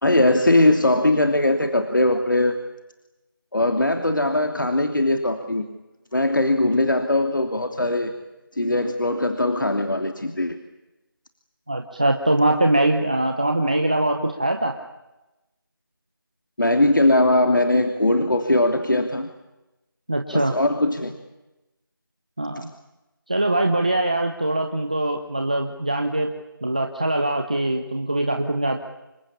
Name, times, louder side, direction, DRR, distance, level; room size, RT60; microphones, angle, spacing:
voice 1, 0.0-2.5 3.5-5.6 6.1-8.1 8.5-10.6 16.6-19.3 20.3-21.1, left 1 dB, 60° left, 5 dB, 2.9 m, -20 dB
voice 2, 11.7-14.8 20.1-20.5 22.4-22.7 23.3-26.3 26.6-28.8, right 1 dB, 20° right, 4 dB, 1.0 m, -22 dB
28.0 x 22.5 x 8.6 m, 0.99 s
figure-of-eight pair, 175°, 12 cm